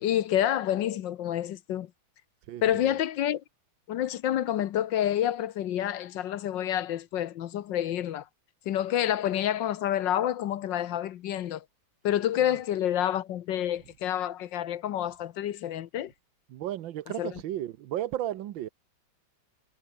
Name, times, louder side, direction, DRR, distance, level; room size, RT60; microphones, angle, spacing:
voice 1, 0.0-1.9 2.6-3.4 3.9-8.3 8.7-11.6 12.0-16.1 17.2-17.3, left 11 dB, 70° left, 1.5 m, -28 dB
voice 2, 2.5-3.0 12.4-12.6 16.5-18.7, right 12 dB, 75° right, 1.6 m, -34 dB
omnidirectional pair, 2.2 m